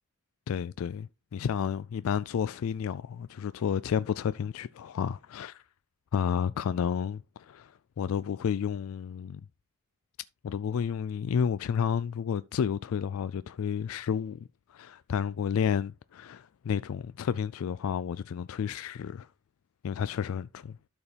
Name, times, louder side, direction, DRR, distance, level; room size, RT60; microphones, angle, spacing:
voice 1, 0.5-5.6 6.1-9.4 10.4-19.3 19.8-20.8, left 7 dB, 65° left, 0.3 m, -31 dB
12.5 x 4.7 x 3.3 m
head